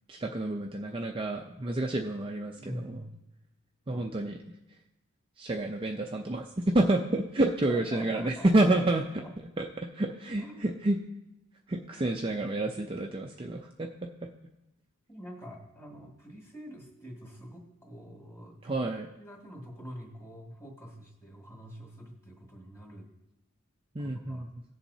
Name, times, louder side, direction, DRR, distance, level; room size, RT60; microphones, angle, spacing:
voice 1, 0.1-3.0 3.9-4.4 5.4-9.0 9.6-11.0 11.7-13.9 18.6-19.1 23.9-24.5, right 2 dB, 25° right, 1 dB, 0.5 m, -29 dB
voice 2, 2.6-3.1 3.9-4.1 7.7-8.5 9.2-9.3 10.4-10.7 15.1-23.1 24.0-24.5, equal, 15° left, -1 dB, 2.0 m, -46 dB
17.0 x 7.1 x 2.7 m, 0.92 s
head